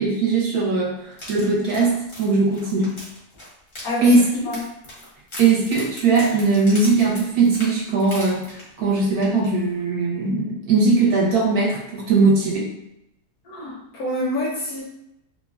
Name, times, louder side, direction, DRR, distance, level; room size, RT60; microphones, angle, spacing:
voice 1, 0.0-3.0 4.0-4.3 5.4-12.8, right 3 dB, 70° right, -4 dB, 1.1 m, -20 dB
sound 1, 1.1-8.9 9.2-9.5 9.8-9.9, equal, 45° left, 0.7 m, -39 dB
voice 2, 13.5-14.8, left 1 dB, 70° left, -3 dB, 1.0 m, -27 dB
3.0 x 2.2 x 2.3 m, 0.82 s
omnidirectional pair, 1.8 m